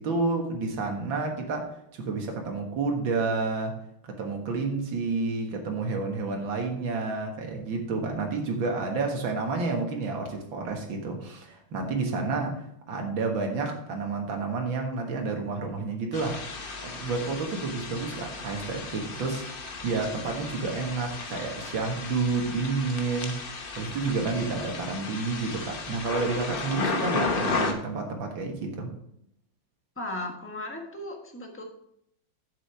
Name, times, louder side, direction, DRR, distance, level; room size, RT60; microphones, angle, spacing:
voice 1, 0.0-3.8 4.0-16.4 16.8-23.4 23.8-28.9, right 3 dB, 75° right, 2.2 m, -30 dB
sound 1, 16.1-27.7, left 3 dB, 40° left, 0.8 m, -34 dB
voice 2, 30.0-31.6, left 1 dB, 10° left, 1.1 m, -36 dB
7.4 x 7.1 x 4.7 m
omnidirectional pair, 2.2 m